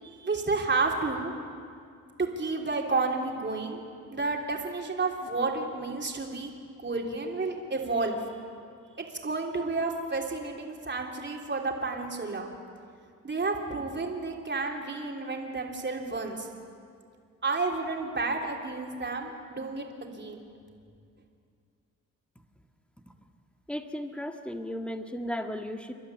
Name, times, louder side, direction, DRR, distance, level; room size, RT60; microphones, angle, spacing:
voice 1, 0.2-1.3 2.2-3.8 4.1-6.5 6.8-8.3 9.0-12.5 13.2-16.5 17.4-20.4, right 3 dB, 35° right, 1 dB, 3.4 m, -31 dB
voice 2, 23.7-25.9, equal, 5° left, 5 dB, 1.8 m, -35 dB
28.5 x 12.0 x 9.6 m, 2.3 s
cardioid pair, 80°, 32 cm